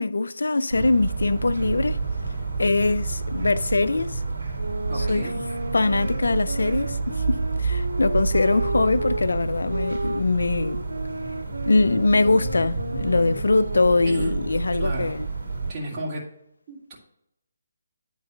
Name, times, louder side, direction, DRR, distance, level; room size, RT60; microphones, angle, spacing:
voice 1, 0.0-2.0 2.6-4.2 4.9-5.3 5.7-10.8 11.7-15.3, left 3 dB, 75° left, 0.5 m, -22 dB
sound 1, 0.7-15.7, right 4 dB, 65° right, 2.7 m, -29 dB
sound 2, 4.5-9.2 9.7-14.7, right 1 dB, 85° right, 0.5 m, -33 dB
voice 2, 4.9-5.4 14.1-14.4 14.8-15.1 15.7-16.3 16.7-16.9, right 1 dB, 30° right, 2.6 m, -33 dB
9.5 x 3.9 x 5.9 m
figure-of-eight pair, 145°, 0 cm